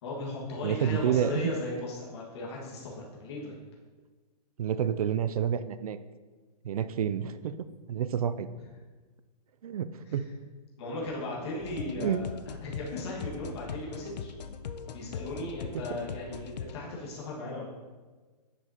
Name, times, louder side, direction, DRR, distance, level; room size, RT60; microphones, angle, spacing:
voice 1, 0.0-3.6 10.1-10.2 10.8-14.3 14.9-17.6, left 2 dB, 40° left, -4 dB, 1.7 m, -37 dB
voice 2, 0.6-1.5 4.6-6.0 6.6-7.6 7.9-8.5 9.6-10.3 12.0-12.2, right 9 dB, 60° right, 13 dB, 0.4 m, -29 dB
sound 1, 11.6-16.8, left 6 dB, 85° left, 0.6 m, -40 dB
9.7 x 5.1 x 2.9 m, 1.3 s
hypercardioid pair, 170°, 21 cm